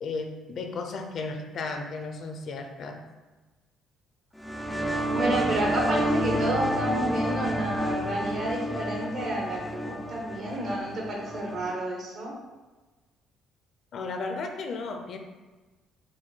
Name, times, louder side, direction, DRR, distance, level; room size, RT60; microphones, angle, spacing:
voice 1, 0.0-3.0 13.9-15.2, left 3 dB, 55° left, 5 dB, 0.5 m, -34 dB
sound 1, 4.4-11.8, equal, 5° left, 0.3 m, -30 dB
voice 2, 5.1-12.3, right 1 dB, 55° right, -2 dB, 1.3 m, -30 dB
4.5 x 2.2 x 4.3 m, 1.2 s
cardioid pair, 100°, 0 cm